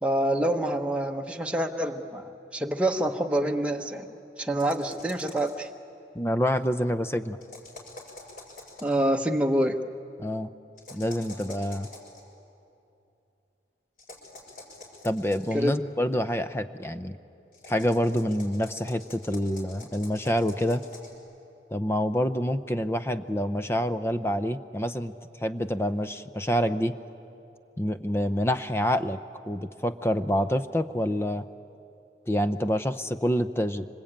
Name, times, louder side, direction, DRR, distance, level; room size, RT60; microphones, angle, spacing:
voice 1, 0.0-4.1 4.4-5.7 8.8-9.8 15.5-15.8, right 1 dB, 5° right, 3 dB, 1.0 m, -26 dB
sound 1, 4.6-5.7 7.4-9.0 10.8-12.2 14.0-15.6 17.5-21.1, left 2 dB, 50° left, 5.8 m, -47 dB
voice 2, 6.1-7.4 10.2-10.5 10.9-11.9 15.0-17.2 17.7-20.8 21.7-25.1 25.4-26.9 27.8-29.2 29.5-31.4 32.3-33.9, equal, 15° left, 10 dB, 0.6 m, -27 dB
26.0 x 26.0 x 8.8 m, 2.8 s
head